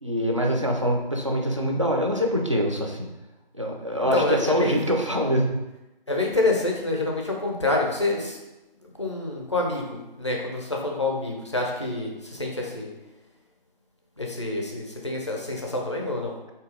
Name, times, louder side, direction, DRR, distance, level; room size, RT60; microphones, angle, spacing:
voice 1, 0.0-3.1 3.6-5.6, equal, 35° right, 0 dB, 0.4 m, -24 dB
voice 2, 4.0-4.8 6.1-8.4 9.0-12.9 14.2-16.3, left 2 dB, 30° left, 0 dB, 0.5 m, -27 dB
4.0 x 2.7 x 3.6 m, 1.0 s
figure-of-eight pair, 160°, 29 cm